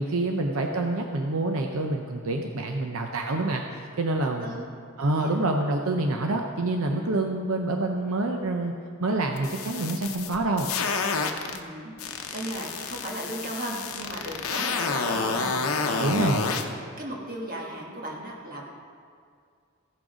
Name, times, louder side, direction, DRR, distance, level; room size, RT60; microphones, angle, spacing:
voice 1, 0.0-4.5 5.0-8.7 9.0-10.7 16.0-16.5, right 2 dB, 75° right, 3 dB, 0.6 m, -27 dB
voice 2, 4.2-4.7 5.2-5.4 11.5-18.6, right 1 dB, 40° right, -2 dB, 1.5 m, -37 dB
sound 1, 9.4-11.6 12.0-16.6, left 4 dB, 75° left, 0.8 m, -29 dB
15.0 x 6.2 x 5.0 m, 2.2 s
head